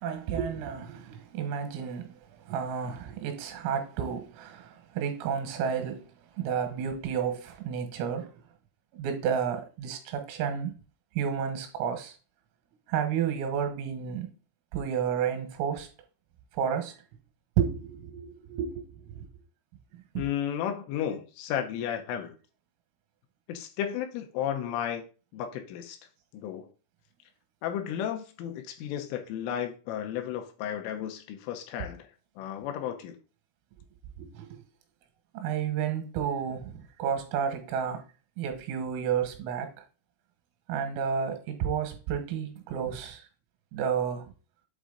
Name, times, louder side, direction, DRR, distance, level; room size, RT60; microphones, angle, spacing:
voice 1, 0.0-6.1 6.4-8.3 8.9-10.7 11.2-12.2 12.9-14.3 14.7-15.9 16.5-17.0 17.6-19.3 20.2-20.3 34.2-34.6 35.3-38.0 38.4-39.7 40.7-43.3 43.7-44.3, right 7 dB, 85° right, 3.7 m, -31 dB
voice 2, 20.2-22.4 23.5-25.0 25.3-26.0 26.3-26.7 27.6-32.1 32.4-33.2, left 9 dB, 85° left, 3.1 m, -33 dB
8.2 x 3.7 x 3.8 m
omnidirectional pair, 6.0 m